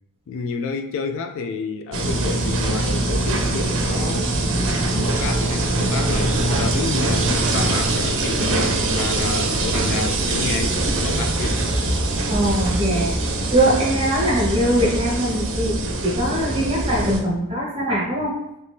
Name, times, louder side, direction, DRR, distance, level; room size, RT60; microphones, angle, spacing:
voice 1, 0.3-4.4 5.0-11.6, left 5 dB, 60° left, 7 dB, 0.3 m, -30 dB
sound 1, 1.9-17.2, right 2 dB, 60° right, 0.6 m, -22 dB
sound 2, 4.8-9.6, left 1 dB, 40° left, 1.1 m, -37 dB
voice 2, 12.3-13.1 13.5-18.3, right 1 dB, 25° right, -3 dB, 1.1 m, -21 dB
3.2 x 2.6 x 3.4 m, 0.87 s
head